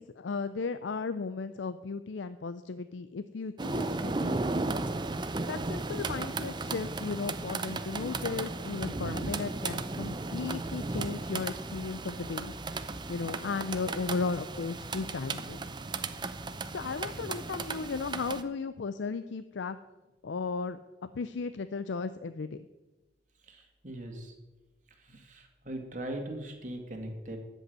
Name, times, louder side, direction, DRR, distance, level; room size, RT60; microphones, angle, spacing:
voice 1, 0.0-4.3 5.5-12.5 13.1-15.6 16.7-19.8 20.2-20.8 21.1-22.6, left 4 dB, 75° left, 11 dB, 0.5 m, -35 dB
sound 1, 3.6-18.4, right 3 dB, 25° right, 0.6 m, -35 dB
voice 2, 23.4-24.3 25.0-27.4, right 1 dB, 40° right, 3 dB, 2.2 m, -40 dB
13.5 x 5.4 x 9.4 m, 1.1 s
head